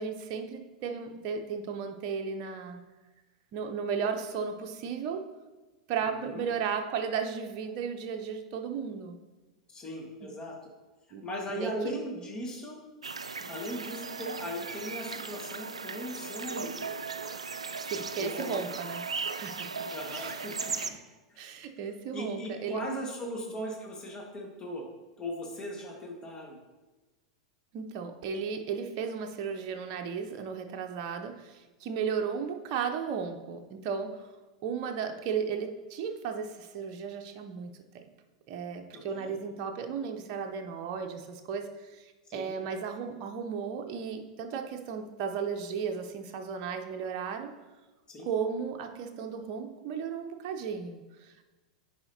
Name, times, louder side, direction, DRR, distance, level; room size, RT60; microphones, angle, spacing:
voice 1, 0.0-2.8 3.5-5.3 5.9-9.2 11.1-11.9 13.4-13.5 17.9-20.5 20.8-21.0 21.4-22.8 27.7-34.3 34.6-38.0 38.5-47.5 48.2-51.4, right 6 dB, 45° right, 5 dB, 0.7 m, -35 dB
voice 2, 6.0-6.4 9.7-10.5 11.2-12.8 13.5-16.9 18.2-18.6 19.9-20.7 21.3-21.4 22.1-24.8 25.2-26.6 38.9-39.3 42.3-42.5 48.1-48.3, equal, 25° left, -1 dB, 1.7 m, -38 dB
sound 1, 13.0-20.9, right 4 dB, 85° right, 0.3 m, -37 dB
9.7 x 4.9 x 2.8 m, 1.2 s
figure-of-eight pair, 90°, 3 cm